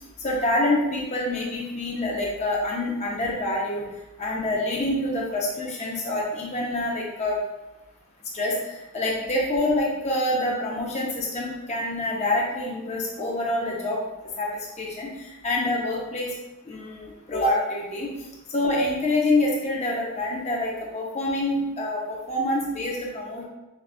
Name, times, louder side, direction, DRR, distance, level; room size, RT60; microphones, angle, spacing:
voice 1, 0.2-3.8 4.2-7.4 8.3-14.0 14.4-16.3 16.7-18.1 18.5-23.4, left 1 dB, 30° left, -3 dB, 0.5 m, -26 dB
5.0 x 2.3 x 2.4 m, 1.0 s
head